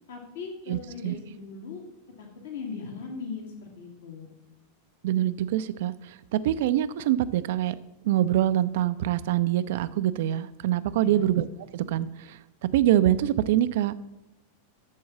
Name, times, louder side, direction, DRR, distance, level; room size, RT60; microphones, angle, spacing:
voice 1, 0.1-1.8 2.2-4.3 11.0-11.1, left 5 dB, 60° left, 2 dB, 1.9 m, -39 dB
voice 2, 0.7-1.1 5.0-7.8 8.0-11.4 11.7-12.4 12.7-13.9, right 12 dB, 55° right, 13 dB, 0.4 m, -25 dB
13.0 x 4.7 x 7.0 m, 0.94 s
figure-of-eight pair, 90°, 0 cm